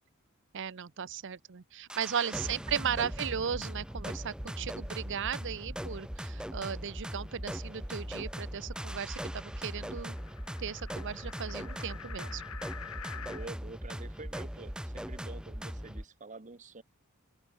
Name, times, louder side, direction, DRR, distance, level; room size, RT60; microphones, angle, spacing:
voice 1, 0.5-10.2 10.6-12.4, right 7 dB, 60° right, 0.7 m, -36 dB
sound 1, 1.9-16.0, equal, 5° right, 1.1 m, -40 dB
voice 2, 2.0-3.1 13.1-16.8, right 3 dB, 35° right, 1.3 m, -48 dB
sound 2, 6.8-13.5, left 8 dB, 85° left, 1.4 m, -49 dB
open air
head